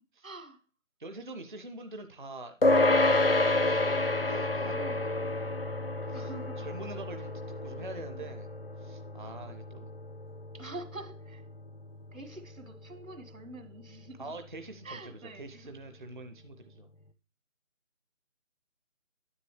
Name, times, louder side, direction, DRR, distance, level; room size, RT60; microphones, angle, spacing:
voice 1, 0.2-0.6 4.7-5.3 6.1-6.7 7.8-8.3 10.5-11.4 12.1-14.3 14.8-15.7, right 2 dB, 85° right, 8 dB, 1.7 m, -46 dB
voice 2, 1.0-4.8 6.1-8.5 8.8-9.9 14.2-16.9, right 2 dB, 40° right, 7 dB, 0.5 m, -45 dB
sound 1, 2.6-12.3, left 2 dB, 45° left, 0.5 m, -29 dB
9.8 x 7.2 x 3.2 m, 0.38 s
figure-of-eight pair, 165°, 40 cm